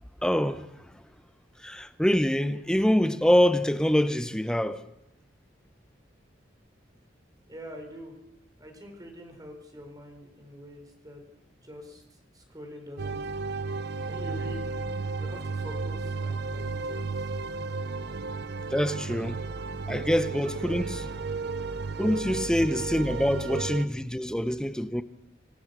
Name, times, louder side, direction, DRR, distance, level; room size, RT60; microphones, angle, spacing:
voice 1, 0.2-0.7 1.6-4.9 18.7-19.4 19.9-21.2 22.0-25.0, equal, 5° left, 0.8 m, -25 dB
voice 2, 7.5-8.1 8.6-12.0 12.3-13.2 14.1-14.8 15.2-17.3, equal, 20° right, 4.4 m, -45 dB
sound 1, 13.0-23.9, right 4 dB, 65° right, 0.8 m, -33 dB
26.0 x 15.5 x 6.8 m
head